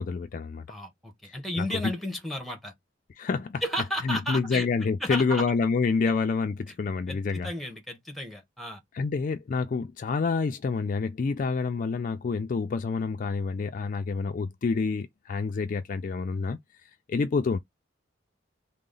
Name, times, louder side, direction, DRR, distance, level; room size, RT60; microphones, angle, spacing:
voice 1, 0.0-0.7 1.3-1.6 3.2-3.6 4.0-7.5 8.9-16.6 17.1-17.6, left 4 dB, 45° left, 0.3 m, -28 dB
voice 2, 0.7-2.7 3.6-4.7 5.0-5.4 7.1-8.8, equal, ahead, 1.0 m, -33 dB
3.9 x 2.0 x 3.8 m
head